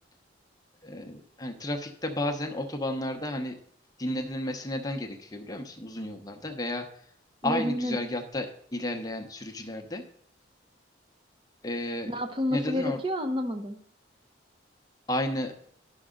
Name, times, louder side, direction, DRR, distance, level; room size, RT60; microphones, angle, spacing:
voice 1, 0.8-3.6 4.0-6.9 7.4-10.0 11.6-12.1 12.5-13.0 15.1-15.5, left 1 dB, 20° left, 4 dB, 0.8 m, -32 dB
voice 2, 7.4-8.0 12.1-13.8, equal, 25° right, 7 dB, 0.7 m, -29 dB
11.0 x 6.1 x 3.8 m, 0.68 s
head